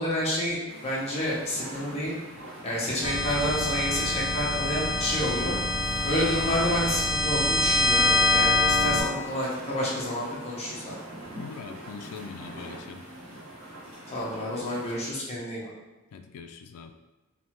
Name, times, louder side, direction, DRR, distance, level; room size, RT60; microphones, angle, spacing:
voice 1, 0.0-2.2 2.6-5.5 6.0-11.0 14.1-15.7, equal, 30° left, -6 dB, 0.8 m, -29 dB
sound 1, 0.7-15.0, right 1 dB, 65° right, 0.9 m, -44 dB
sound 2, 3.0-9.0, left 2 dB, 20° right, 0.4 m, -25 dB
voice 2, 11.4-13.0 16.1-16.9, left 5 dB, 80° left, 7 dB, 0.3 m, -42 dB
3.3 x 2.2 x 2.9 m, 1.1 s
head